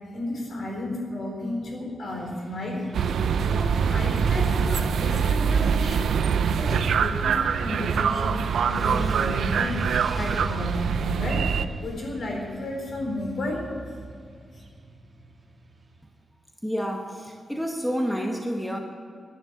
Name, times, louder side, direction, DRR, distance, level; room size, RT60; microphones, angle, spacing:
voice 1, 0.1-3.2 3.5-6.2 6.5-13.7 14.5-14.6, left 1 dB, 55° left, 0 dB, 4.1 m, -33 dB
Motorcycle / Traffic noise roadway noise, 2.2-16.3, right 2 dB, 30° right, 1.6 m, -41 dB
sound 1, 2.9-11.7, right 6 dB, 85° right, 0.6 m, -24 dB
voice 2, 16.6-18.8, equal, ahead, 2 dB, 1.0 m, -29 dB
10.5 x 9.9 x 9.6 m, 2.3 s
wide cardioid pair, 155°, 0 cm